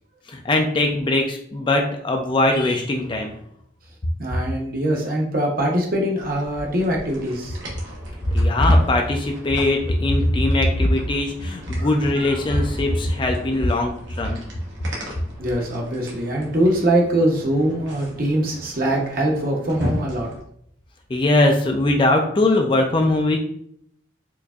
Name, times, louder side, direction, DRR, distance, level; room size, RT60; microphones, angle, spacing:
voice 1, 0.3-3.3 8.3-14.4 21.1-23.4, left 1 dB, 25° left, 3 dB, 0.3 m, -20 dB
voice 2, 4.2-7.6 11.7-11.9 12.1-12.6 15.4-20.3, right 1 dB, 50° right, -1 dB, 0.8 m, -23 dB
sound 1, 6.2-20.4, equal, 75° right, 1.0 m, -37 dB
4.6 x 2.6 x 2.3 m, 0.70 s
head